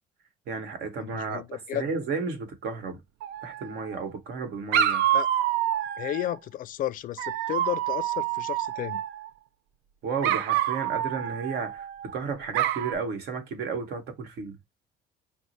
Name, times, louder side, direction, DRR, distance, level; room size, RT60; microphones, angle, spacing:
voice 1, 0.5-3.0 3.4-5.0 10.0-14.6, right 5 dB, 70° right, 1.2 m, -33 dB
voice 2, 1.0-1.8 5.1-5.3 6.0-9.0, left 13 dB, 55° left, 0.4 m, -33 dB
Dog, 3.2-4.0 4.7-6.4 7.2-9.3 10.2-12.1 12.5-12.9, right 11 dB, 90° right, 0.5 m, -27 dB
4.5 x 2.1 x 4.0 m
cardioid pair, 110°, 17 cm